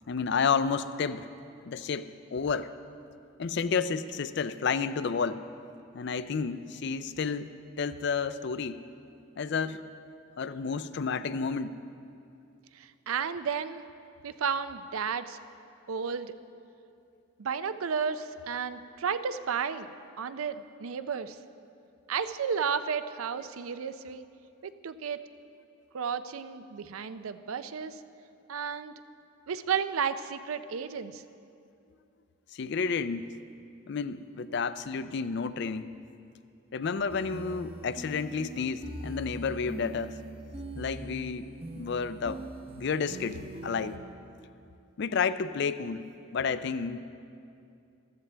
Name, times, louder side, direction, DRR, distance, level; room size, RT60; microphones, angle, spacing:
voice 1, 0.1-1.3 1.7-2.7 3.4-5.4 5.9-7.5 7.8-8.8 9.4-9.8 10.4-11.8 32.5-33.3 33.9-35.9 36.7-40.2 40.8-42.4 42.8-44.0 45.0-46.0 46.3-47.0, left 5 dB, 55° left, 14 dB, 0.4 m, -31 dB
voice 2, 12.7-13.8 14.2-15.4 15.9-16.3 17.4-19.9 20.2-21.4 22.1-24.2 24.6-25.2 25.9-28.0 28.5-28.9 29.5-31.2, right 6 dB, 85° right, 12 dB, 0.5 m, -32 dB
sound 1, 37.1-44.0, right 1 dB, 25° right, 0.7 m, -42 dB
14.5 x 13.5 x 3.4 m, 2.6 s
head